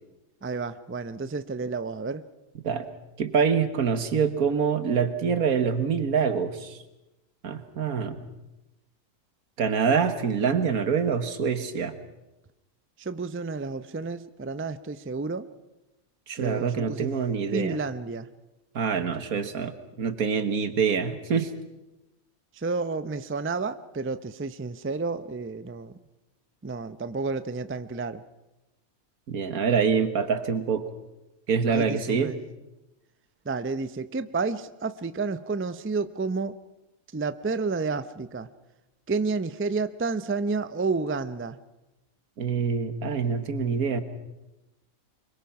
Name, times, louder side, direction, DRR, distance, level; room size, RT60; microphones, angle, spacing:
voice 1, 0.4-2.2 13.0-15.5 16.4-17.1 17.5-18.3 22.5-25.9 26.6-28.2 31.7-32.4 33.4-36.6 37.1-38.5 39.1-41.6, right 4 dB, 20° right, 13 dB, 0.3 m, -30 dB
voice 2, 3.2-6.8 7.4-8.2 9.6-11.9 16.3-17.8 18.8-21.5 29.3-30.9 31.5-32.3 42.4-44.0, right 6 dB, 90° right, 10 dB, 1.9 m, -25 dB
25.0 x 22.5 x 5.8 m, 0.99 s
omnidirectional pair, 1.5 m